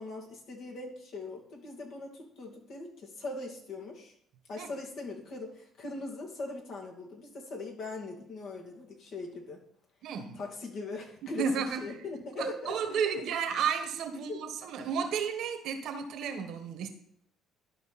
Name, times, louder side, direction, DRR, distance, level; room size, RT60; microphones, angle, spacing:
voice 1, 0.0-4.1 4.5-9.6 10.3-12.8 13.1-13.2 14.3-14.4, left 2 dB, 65° left, 0 dB, 2.4 m, -40 dB
voice 2, 10.0-10.4 11.4-12.0 12.4-16.9, right 6 dB, 70° right, 7 dB, 1.2 m, -32 dB
12.0 x 5.0 x 4.1 m, 0.68 s
supercardioid pair, 80°, 0 cm